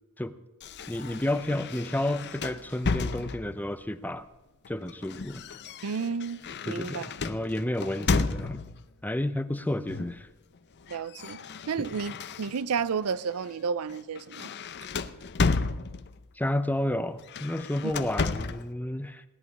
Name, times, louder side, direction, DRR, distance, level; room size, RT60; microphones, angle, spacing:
sound 1, 0.6-3.7 4.6-8.9 9.9-10.3 10.5-12.9 13.3-13.5 13.9-16.3 17.2-18.7, left 4 dB, 50° left, 0.6 m, -33 dB
voice 1, 0.9-4.3 4.7-5.5 6.7-8.6 9.0-10.3 16.3-19.2, left 1 dB, 10° left, 0.6 m, -31 dB
voice 2, 5.8-7.0 10.9-11.4 11.7-14.5, right 6 dB, 80° right, 0.5 m, -31 dB
17.5 x 11.0 x 5.4 m
head